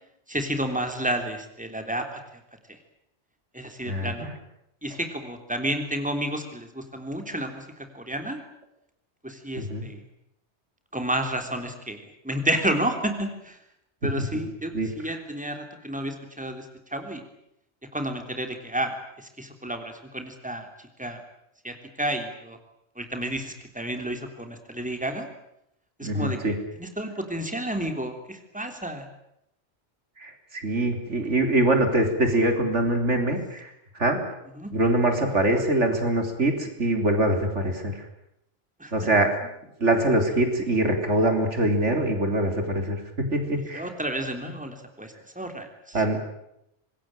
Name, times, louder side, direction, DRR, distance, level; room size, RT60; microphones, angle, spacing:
voice 1, 0.3-2.2 3.5-4.3 4.8-8.4 9.2-10.0 10.9-12.0 12.2-13.6 14.0-17.2 17.9-20.7 21.0-21.2 21.6-22.6 23.0-25.3 26.0-29.1 34.6-34.7 38.8-38.9 43.7-46.0, right 1 dB, 5° right, 5 dB, 3.5 m, -31 dB
voice 2, 3.9-4.3 9.6-9.8 14.3-14.4 14.7-14.9 26.0-26.5 30.2-33.7 34.0-34.2 34.7-37.9 38.9-39.3 39.8-43.9 45.9-46.2, right 1 dB, 80° right, 5 dB, 4.1 m, -23 dB
26.0 x 21.0 x 9.0 m, 0.81 s
omnidirectional pair, 1.2 m